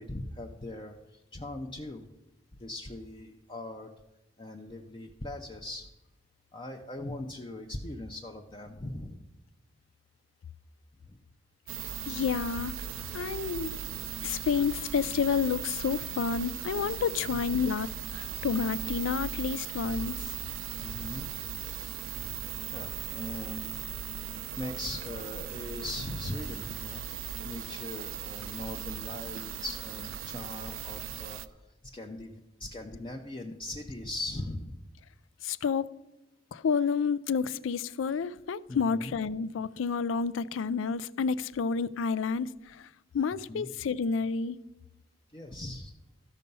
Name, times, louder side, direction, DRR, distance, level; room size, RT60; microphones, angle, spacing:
voice 1, 0.0-2.1 2.6-3.9 4.4-5.9 6.5-9.3 11.0-11.2 17.2-17.4 20.8-21.3 22.2-22.4 22.7-23.8 24.6-27.0 27.4-31.6 31.9-32.3 32.6-34.8 38.7-39.1 43.5-43.7 45.3-45.9, left 2 dB, 25° left, 0.6 m, -40 dB
sound 1, 11.7-31.5, right 8 dB, 90° right, 0.5 m, -38 dB
voice 2, 12.1-12.7 13.1-13.7 14.2-17.9 18.1-20.2 35.4-35.9 36.5-42.9 43.1-44.6, left 6 dB, 80° left, 0.4 m, -30 dB
14.0 x 5.5 x 5.4 m
head